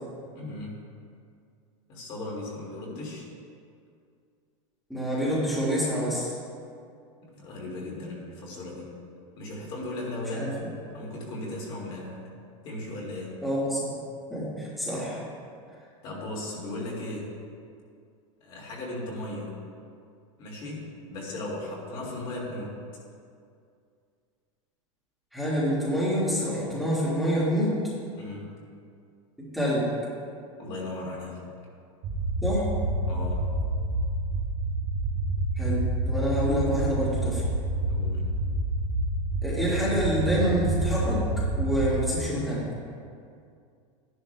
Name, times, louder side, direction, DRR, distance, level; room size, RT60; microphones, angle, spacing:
voice 1, 0.4-0.8 1.9-3.3 7.2-8.9 9.4-10.6 10.9-12.3 12.6-13.4 16.0-17.3 18.4-19.6 20.4-22.8 28.1-28.5 30.6-31.4 33.1-33.5 37.9-38.3, left 1 dB, 30° left, -3 dB, 2.0 m, -36 dB
voice 2, 4.9-6.3 10.3-10.7 13.4-13.9 14.3-15.2 25.3-27.7 29.5-29.9 32.4-32.7 35.6-37.4 39.4-41.2 41.6-42.7, equal, ahead, -10 dB, 1.7 m, -27 dB
sound 1, 32.0-42.0, right 2 dB, 35° right, 1.2 m, -28 dB
13.5 x 11.0 x 2.2 m, 2.3 s
supercardioid pair, 170°, 17 cm